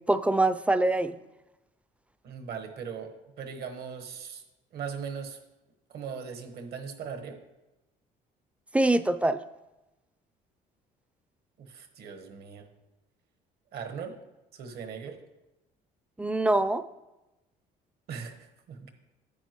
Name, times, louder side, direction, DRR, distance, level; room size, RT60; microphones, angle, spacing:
voice 1, 0.1-1.2 8.7-9.4 16.2-16.8, right 2 dB, 5° right, 13 dB, 0.4 m, -24 dB
voice 2, 2.2-4.4 4.7-5.4 5.9-7.4 11.6-12.7 13.7-14.2 14.5-15.2 18.1-18.9, right 6 dB, 70° right, 6 dB, 1.3 m, -39 dB
10.0 x 8.9 x 3.0 m, 1.0 s
cardioid pair, 110°, 17 cm